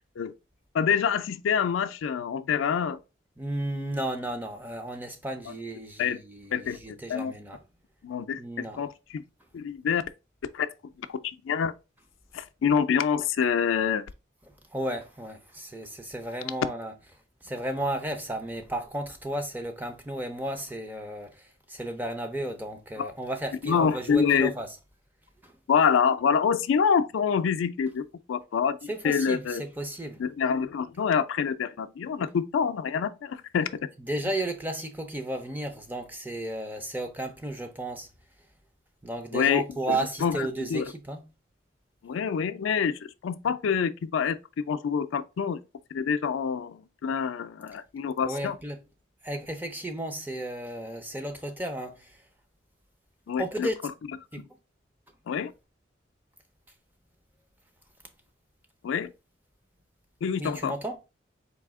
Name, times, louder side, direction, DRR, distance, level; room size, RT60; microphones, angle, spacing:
voice 1, 0.7-3.0 6.0-6.2 6.5-6.8 7.1-7.4 8.0-9.2 9.5-10.0 10.5-10.7 11.0-11.7 12.3-14.0 23.0-23.1 23.6-24.5 25.7-29.6 30.2-33.7 39.3-40.9 42.0-45.6 45.9-48.6 53.3-53.9 54.3-54.5 55.3-55.5 58.8-59.1 60.2-60.7, left 7 dB, 85° left, 0.4 m, -26 dB
voice 2, 3.4-7.6 8.4-8.8 14.7-16.9 17.4-24.7 25.4-25.5 28.9-30.2 34.1-38.1 39.0-41.2 48.2-48.8 49.2-52.1 53.4-53.7 54.3-54.4 60.4-61.0, right 1 dB, 10° right, 0.5 m, -33 dB
4.1 x 2.7 x 3.5 m
head